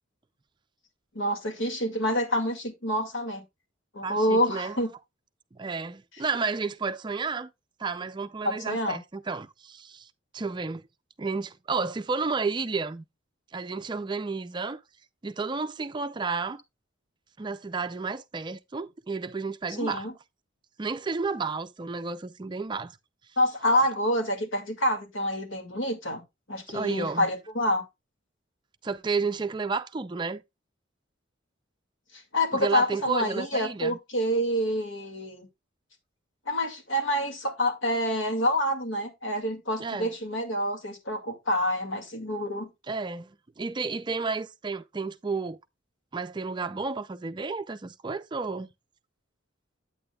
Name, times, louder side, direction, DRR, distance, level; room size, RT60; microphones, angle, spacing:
voice 1, 1.1-3.4 3.9-4.9 8.4-9.0 19.8-20.1 23.4-26.2 26.5-27.8 32.3-35.5 36.5-42.7, equal, 80° left, 2.1 m, -27 dB
voice 2, 4.0-4.8 5.5-7.5 7.8-10.1 10.3-10.8 11.2-13.0 13.5-14.8 15.2-16.6 17.4-20.1 20.8-22.9 26.7-27.3 28.8-30.4 32.5-34.0 39.8-40.1 42.9-45.6 46.1-48.7, right 4 dB, 25° right, 0.4 m, -31 dB
8.7 x 8.7 x 2.3 m
head